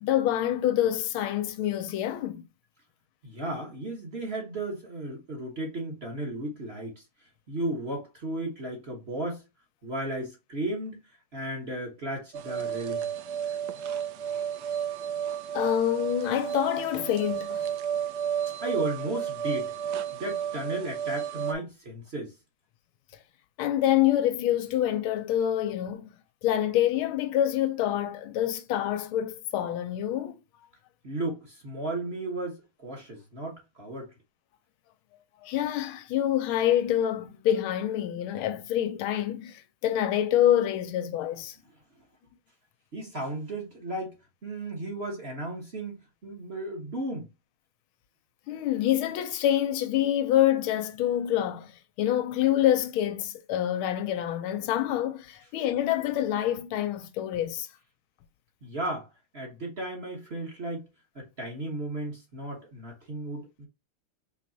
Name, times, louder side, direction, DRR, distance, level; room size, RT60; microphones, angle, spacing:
voice 1, 0.0-2.4 15.5-17.7 23.6-26.1 26.4-30.4 35.4-41.6 48.5-51.7 52.0-57.7, left 11 dB, 80° left, 1.4 m, -26 dB
voice 2, 3.2-7.0 7.5-9.4 9.8-11.0 11.3-13.1 18.6-19.7 20.1-22.3 31.0-34.1 42.9-44.2 44.4-47.3 58.6-59.1 59.3-60.9 61.1-63.7, right 1 dB, 35° right, 1.2 m, -34 dB
sound 1, 12.3-21.5, right 8 dB, 85° right, 0.9 m, -32 dB
4.8 x 3.1 x 2.7 m
omnidirectional pair, 2.3 m